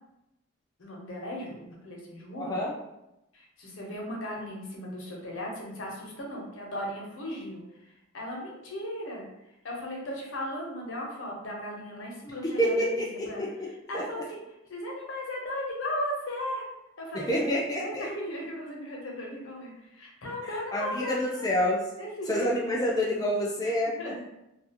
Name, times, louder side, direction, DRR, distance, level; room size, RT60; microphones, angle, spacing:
voice 1, 0.8-2.6 3.3-9.2 9.6-13.4 13.9-14.4 14.7-16.7 17.0-21.6 22.0-22.7 23.6-23.7 24.0-24.2, left 1 dB, 75° left, -2 dB, 0.8 m, -37 dB
voice 2, 2.3-2.7 12.6-13.5 13.9-14.2 17.1-18.1 20.5-21.8 22.3-24.2, equal, 20° left, -3 dB, 0.3 m, -28 dB
2.4 x 2.3 x 2.8 m, 0.88 s
head